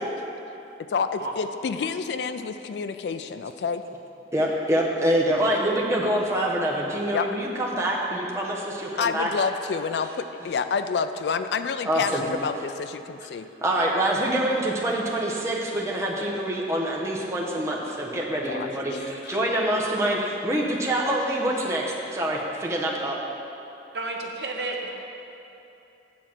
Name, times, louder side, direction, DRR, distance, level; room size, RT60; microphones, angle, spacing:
voice 1, 0.8-3.9 7.1-7.4 9.0-13.5 18.5-19.4, left 5 dB, 70° left, 10 dB, 0.3 m, -29 dB
voice 2, 4.3-9.3 11.8-12.2 13.6-23.2, right 1 dB, 15° right, -3 dB, 1.0 m, -25 dB
voice 3, 23.9-24.9, right 2 dB, 65° right, 1 dB, 0.9 m, -31 dB
8.7 x 4.5 x 7.3 m, 2.9 s
head